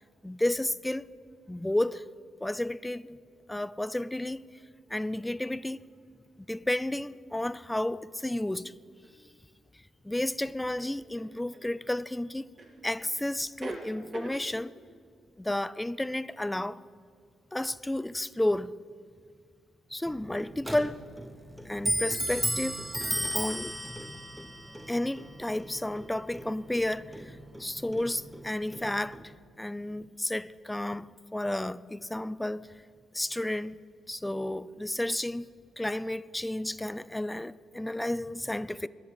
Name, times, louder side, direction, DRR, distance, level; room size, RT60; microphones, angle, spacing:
voice 1, 0.2-1.1 1.5-2.1 2.4-3.2 3.5-4.4 4.9-5.8 6.5-8.7 10.0-12.5 12.8-14.7 15.4-16.8 17.5-18.7 19.9-21.0 21.7-22.8 23.3-23.7 24.9-29.2 29.6-32.7 33.1-33.8 34.1-35.5 35.8-38.9, left 1 dB, 10° left, 0.5 m, -32 dB
sound 1, 9.0-9.1 10.8-11.7 12.6-13.1 13.4-14.4, right 2 dB, 45° right, 2.1 m, -42 dB
Clock, 20.1-29.3, equal, 10° right, 1.3 m, -36 dB
11.0 x 9.6 x 8.4 m
hypercardioid pair, 45°, 0 cm